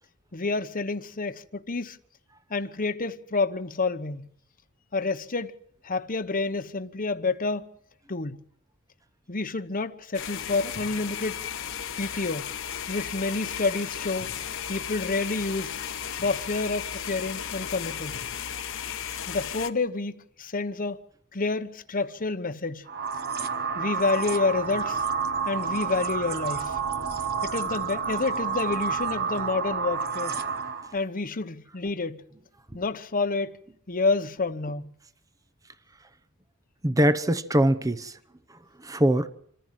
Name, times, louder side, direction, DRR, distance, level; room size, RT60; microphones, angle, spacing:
voice 1, 0.3-2.0 2.5-4.3 4.9-5.6 5.8-7.7 8.1-8.4 9.3-11.4 12.0-12.5 12.9-14.3 14.7-15.8 16.1-18.2 19.3-20.1 20.4-21.0 21.3-22.8 23.7-25.0 25.4-26.8 27.4-30.4 30.9-32.2 32.7-33.6 33.9-34.9, left 3 dB, 40° left, 1.1 m, -29 dB
sound 1, 10.1-19.7, left 8 dB, 60° left, 1.2 m, -35 dB
sound 2, 22.9-30.9, right 5 dB, 45° right, 1.1 m, -29 dB
voice 2, 36.8-38.2 38.5-39.3, right 1 dB, 15° right, 0.9 m, -23 dB
26.5 x 15.0 x 7.6 m
head